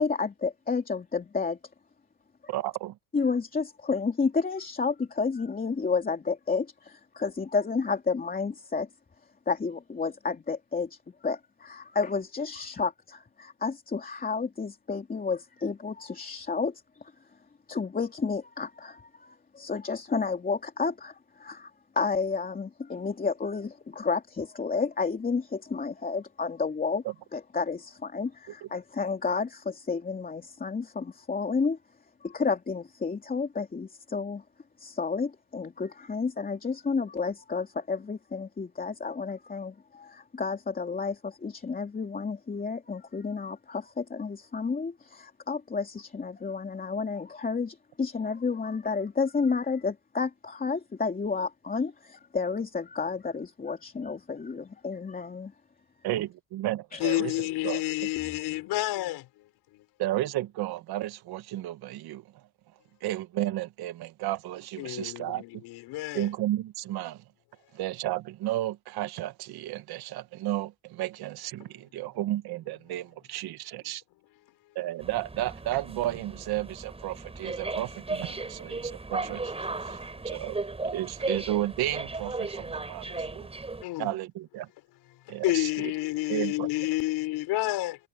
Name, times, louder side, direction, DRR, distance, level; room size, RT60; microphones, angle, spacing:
voice 1, 0.0-1.6 3.1-8.9 9.5-17.1 17.7-27.0 27.3-31.8 32.2-34.4 34.8-55.5 56.9-57.0, left 4 dB, 20° left, 3.0 m, -31 dB
voice 2, 2.5-2.9 56.0-57.3 57.6-57.8 60.0-62.2 63.0-65.4 66.1-67.2 67.7-74.0 74.7-80.0 80.3-80.6 80.9-83.5 84.0-84.7 85.3-85.9 86.3-86.7, right 14 dB, 70° right, 1.5 m, -33 dB
voice 3, 57.0-59.2 64.8-66.3 83.8-84.2 85.3-88.0, left 17 dB, 75° left, 4.4 m, -29 dB
sound 1, 75.0-83.8, right 3 dB, 15° right, 6.3 m, -36 dB
cardioid pair, 120°, 39 cm